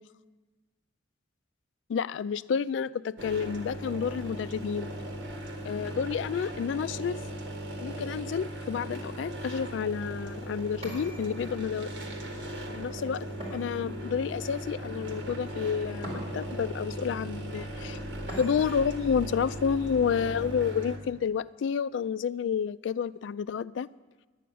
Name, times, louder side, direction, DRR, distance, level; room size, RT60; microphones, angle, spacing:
voice 1, 1.9-4.9 5.6-7.2 7.8-11.9 12.7-13.3 13.5-18.0 18.3-23.9, left 7 dB, 75° left, 0.3 m, -30 dB
sound 1, 3.2-21.0, right 1 dB, 75° right, 1.5 m, -38 dB
sound 2, 10.8-11.8 13.4-14.4 16.0-16.7 18.3-18.9, right 1 dB, 35° right, 4.3 m, -43 dB
10.5 x 9.2 x 7.0 m
head